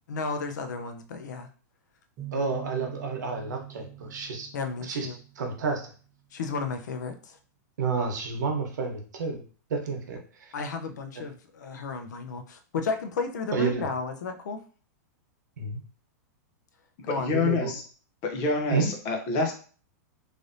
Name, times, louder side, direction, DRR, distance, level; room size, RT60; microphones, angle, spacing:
voice 1, 0.1-1.5 4.5-5.2 6.3-7.4 10.5-14.6 17.0-17.3, left 4 dB, 80° left, 6 dB, 0.6 m, -33 dB
sound 1, 2.2-5.9, right 15 dB, 20° right, 0.7 m, -43 dB
voice 2, 2.3-4.5 4.8-5.1 5.4-5.8 7.8-9.4 9.7-10.5 11.2-11.3 13.5-13.9 15.6-15.8 17.3-17.7 18.7-18.9, right 4 dB, 90° right, 2 dB, 1.0 m, -30 dB
voice 3, 17.0-17.8 18.2-19.5, left 4 dB, 25° left, 4 dB, 0.5 m, -27 dB
3.2 x 2.6 x 2.6 m, 0.40 s
supercardioid pair, 180°, 9 cm